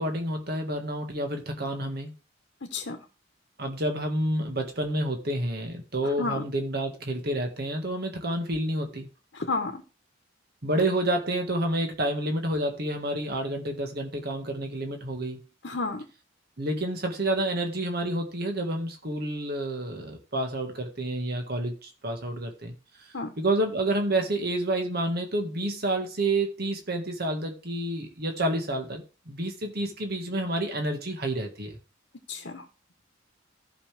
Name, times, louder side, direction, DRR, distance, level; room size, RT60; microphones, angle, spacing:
voice 1, 0.0-2.1 3.6-9.1 10.6-15.4 16.6-22.7 23.4-31.8, right 1 dB, 55° right, 1.9 m, -29 dB
voice 2, 2.6-3.0 6.0-6.5 9.3-9.8 15.6-16.0 23.1-23.3 32.3-32.7, left 3 dB, 65° left, 1.1 m, -31 dB
14.0 x 5.6 x 3.4 m
head